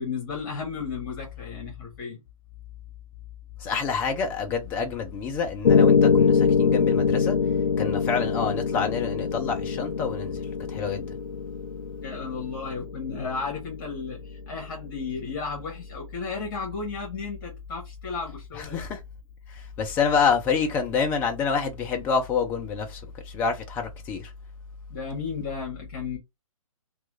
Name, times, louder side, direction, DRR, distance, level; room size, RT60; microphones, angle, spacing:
voice 1, 0.0-2.2 12.0-18.8 24.9-26.2, left 5 dB, 40° left, 1.4 m, -34 dB
voice 2, 3.6-7.4 7.8-11.1 18.5-19.0 19.5-24.3, left 6 dB, 10° left, 0.4 m, -27 dB
Piano, 5.6-13.7, left 6 dB, 70° left, 0.6 m, -23 dB
3.0 x 2.3 x 3.1 m
hypercardioid pair, 150°, 18 cm